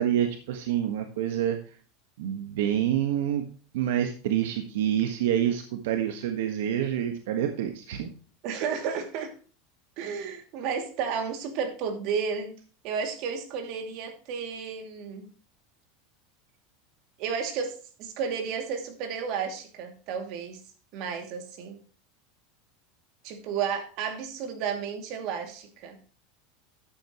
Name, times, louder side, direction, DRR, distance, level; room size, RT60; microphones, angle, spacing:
voice 1, 0.0-1.6 2.2-3.4 3.7-8.1, right 10 dB, 80° right, 6 dB, 1.4 m, -27 dB
voice 2, 8.4-9.3 10.0-12.5 12.8-15.3 17.2-20.6 20.9-21.8 23.2-26.0, right 6 dB, 55° right, 5 dB, 2.5 m, -32 dB
11.5 x 8.9 x 3.0 m, 0.38 s
supercardioid pair, 140°, 0 cm